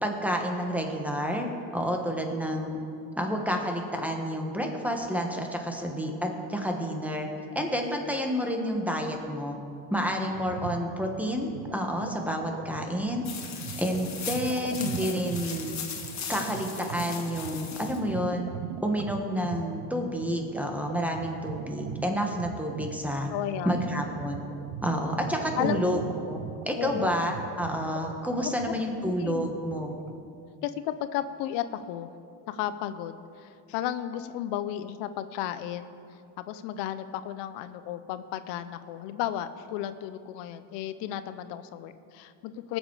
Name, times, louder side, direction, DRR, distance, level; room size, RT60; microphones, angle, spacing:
voice 1, 0.0-2.8 3.2-7.3 7.5-9.6 9.9-13.3 13.8-15.7 16.3-18.5 18.8-23.3 23.6-24.4 24.8-26.0 26.3-26.4 26.7-29.9, equal, 5° right, 2 dB, 1.5 m, -29 dB
sound 1, 10.3-30.2, right 11 dB, 80° right, 0.6 m, -41 dB
sound 2, 13.2-18.0, left 6 dB, 40° left, 1.6 m, -38 dB
voice 2, 22.1-22.4 23.3-23.8 25.6-26.0 26.8-27.1 28.7-28.8 29.0-29.5 30.6-32.1 32.5-42.8, left 11 dB, 90° left, 12 dB, 0.7 m, -34 dB
18.5 x 7.2 x 4.9 m, 2.5 s
cardioid pair, 110°, 42 cm